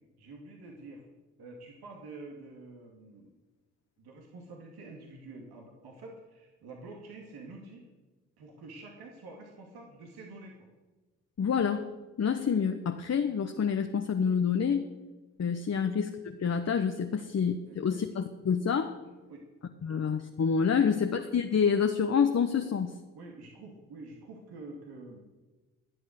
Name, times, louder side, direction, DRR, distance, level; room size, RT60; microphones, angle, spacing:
voice 1, 0.2-1.1 1.4-3.4 4.0-7.8 8.4-10.5 17.2-17.3 17.7-18.0 19.0-19.4 19.9-20.0 20.8-20.9 23.1-25.2, right 3 dB, 70° right, 0 dB, 2.6 m, -48 dB
voice 2, 11.4-11.9 12.2-14.8 15.4-18.9 19.8-23.0, left 6 dB, 40° left, 5 dB, 1.1 m, -27 dB
21.0 x 8.0 x 6.7 m, 1.2 s
hypercardioid pair, 45°, 40 cm